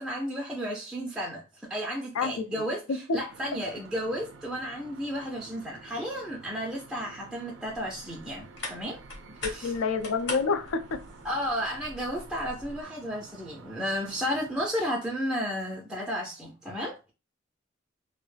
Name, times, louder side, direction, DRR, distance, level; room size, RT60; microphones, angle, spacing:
voice 1, 0.0-9.0 9.5-9.7 11.2-17.1, equal, ahead, 0.3 m, -33 dB
sound 1, 3.3-14.7, right 4 dB, 75° right, 0.4 m, -51 dB
sound 2, 7.7-12.8, left 2 dB, 55° left, 0.9 m, -42 dB
voice 2, 9.6-10.8, left 4 dB, 85° left, 0.4 m, -27 dB
2.2 x 2.0 x 3.1 m
head